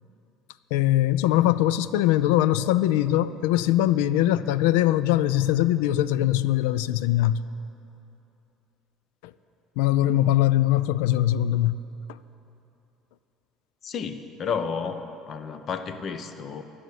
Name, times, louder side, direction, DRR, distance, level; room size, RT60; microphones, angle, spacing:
voice 1, 0.7-7.4 9.8-11.8, left 13 dB, 85° left, 16 dB, 0.3 m, -22 dB
voice 2, 13.8-16.6, left 6 dB, 50° left, 10 dB, 0.8 m, -32 dB
12.5 x 6.4 x 9.0 m, 2.9 s
supercardioid pair, 85°, 0 cm